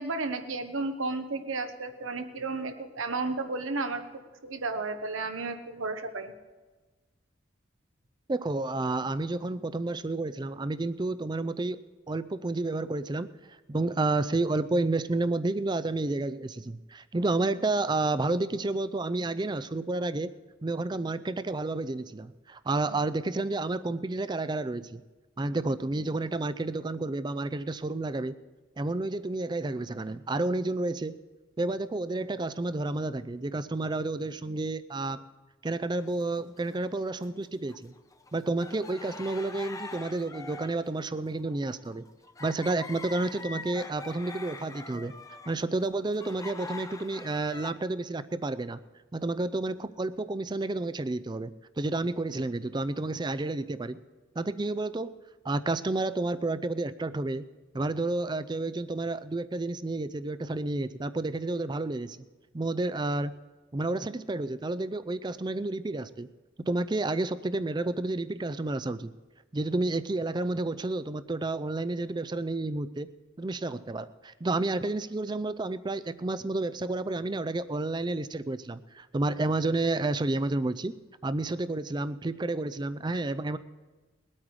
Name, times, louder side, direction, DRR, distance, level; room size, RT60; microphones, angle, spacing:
voice 1, 0.0-6.3, right 3 dB, 90° right, 8 dB, 1.2 m, -33 dB
voice 2, 8.3-11.8 12.1-13.3 13.7-20.3 20.6-25.0 25.4-28.4 28.8-31.1 31.6-35.2 35.6-37.9 38.3-42.1 42.4-45.1 45.5-48.8 49.1-51.5 51.8-54.0 54.4-55.1 55.4-57.4 57.7-62.2 62.5-63.3 63.7-66.3 66.7-69.1 69.5-73.1 73.4-80.9 81.2-83.6, right 2 dB, 20° right, 14 dB, 0.4 m, -30 dB
sound 1, 36.0-37.3 37.7-47.7, left 3 dB, 15° left, 0.6 m, -44 dB
20.5 x 8.7 x 4.8 m, 1.3 s
head